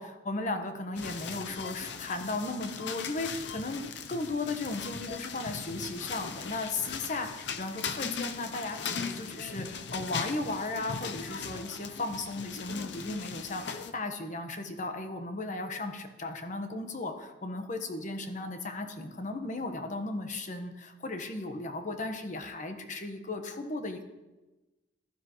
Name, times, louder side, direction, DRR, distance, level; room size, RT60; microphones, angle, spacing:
voice 1, 0.0-3.8 4.1-24.0, left 2 dB, 45° left, 6 dB, 1.2 m, -36 dB
sound 1, 1.0-13.9, left 6 dB, 70° left, 0.6 m, -39 dB
15.5 x 12.5 x 3.1 m, 1.1 s
head